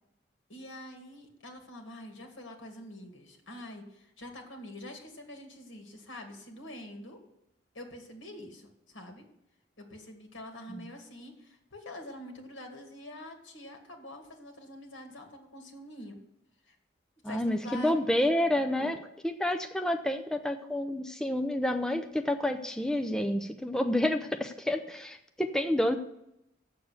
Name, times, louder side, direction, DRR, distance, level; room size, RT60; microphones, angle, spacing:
voice 1, 0.5-7.2 7.7-9.2 9.8-16.2 16.7-16.8 17.2-18.0 18.5-19.0, left 1 dB, 85° left, 3 dB, 2.2 m, -46 dB
voice 2, 17.2-19.0 19.2-26.0, left 1 dB, 5° left, 5 dB, 0.5 m, -29 dB
7.7 x 6.9 x 8.1 m, 0.82 s
head